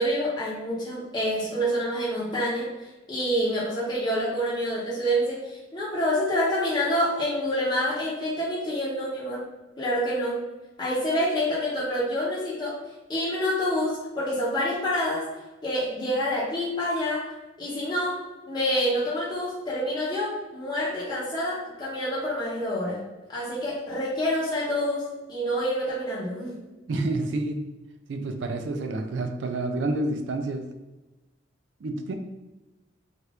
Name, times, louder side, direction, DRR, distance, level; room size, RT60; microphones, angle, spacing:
voice 1, 0.0-9.5 9.8-10.4 10.8-12.8 13.1-15.3 15.6-17.3 17.6-23.0 23.3-26.6, equal, 25° left, -8 dB, 0.7 m, -27 dB
voice 2, 26.9-27.7 28.1-30.7 31.8-32.1, right 2 dB, 75° right, 6 dB, 0.4 m, -29 dB
2.8 x 2.5 x 3.3 m, 1.1 s
head